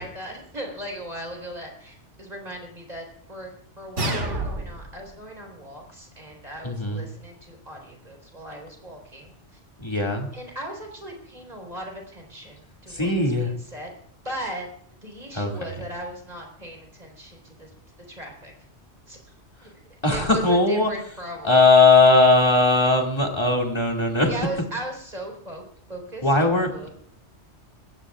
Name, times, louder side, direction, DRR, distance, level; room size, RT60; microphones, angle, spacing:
voice 1, 0.0-3.5 3.8-9.6 10.3-13.9 14.2-14.7 15.0-17.7 18.1-18.5 19.1-19.4 19.6-21.6 24.2-26.9, right 1 dB, 35° right, 1 dB, 4.3 m, -38 dB
sound 1, 4.0-5.0, right 1 dB, 85° right, 2.4 m, -28 dB
voice 2, 6.6-7.1 9.8-10.3 12.9-13.5 15.3-15.8 20.0-20.9 21.4-24.3 26.2-26.9, left 3 dB, 25° left, 0 dB, 2.4 m, -19 dB
22.0 x 17.0 x 2.5 m, 0.64 s
omnidirectional pair, 1.2 m